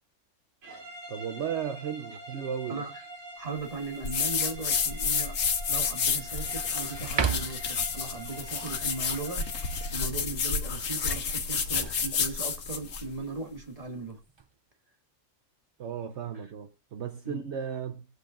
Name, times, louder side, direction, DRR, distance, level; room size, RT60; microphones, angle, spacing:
sound 1, 0.6-10.1, right 1 dB, 85° right, 2.6 m, -45 dB
voice 1, 1.1-2.8 15.8-18.1, right 8 dB, 65° right, 1.0 m, -35 dB
voice 2, 2.7-3.0 3.4-5.4 5.7-9.5 9.9-14.2 16.3-16.5 17.2-17.5, right 3 dB, 30° right, 1.8 m, -38 dB
sound 2, 4.0-13.1, left 6 dB, 90° left, 1.4 m, -30 dB
sound 3, 4.1-4.5 5.1-5.2 5.7-6.5 7.0-7.8 11.3-12.7 14.0-14.6, right 6 dB, 50° right, 0.3 m, -35 dB
20.0 x 7.9 x 2.5 m
omnidirectional pair, 1.3 m